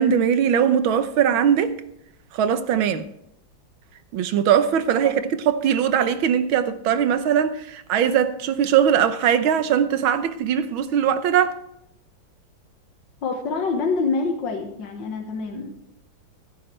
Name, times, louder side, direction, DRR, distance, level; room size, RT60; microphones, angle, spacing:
voice 1, 0.0-1.8 2.3-3.1 4.1-5.2 5.5-11.6, right 8 dB, 90° right, 1.7 m, -20 dB
voice 2, 13.2-15.8, left 4 dB, 65° left, 2.1 m, -26 dB
15.0 x 13.5 x 3.3 m
omnidirectional pair, 2.1 m